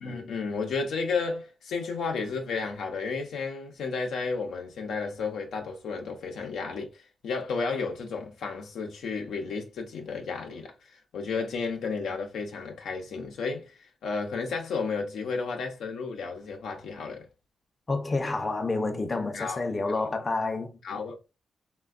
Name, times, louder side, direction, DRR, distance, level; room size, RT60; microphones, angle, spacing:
voice 1, 0.0-10.7 11.1-13.7 14.0-17.3 19.3-19.7 20.0-20.1 20.8-21.2, left 4 dB, 90° left, 0.5 m, -32 dB
voice 2, 17.9-20.7, left 3 dB, 35° left, 0.5 m, -29 dB
3.3 x 2.2 x 2.4 m
cardioid pair, 70°, 0 cm